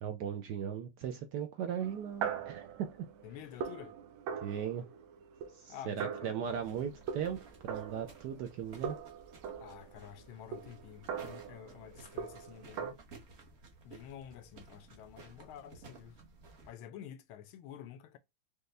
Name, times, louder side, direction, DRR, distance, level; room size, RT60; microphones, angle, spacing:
voice 1, 0.0-3.1 4.4-4.9 5.6-7.4 7.6-9.0, right 8 dB, 70° right, 1.0 m, -38 dB
sound 1, 1.8-8.6 8.8-12.9, right 7 dB, 90° right, 1.5 m, -42 dB
voice 2, 3.2-3.9 5.7-6.6 9.6-13.0 13.8-16.2 16.6-18.2, left 10 dB, 85° left, 1.4 m, -49 dB
sound 2, 6.4-16.7, right 3 dB, 45° right, 0.8 m, -56 dB
5.3 x 2.2 x 3.2 m
omnidirectional pair, 2.2 m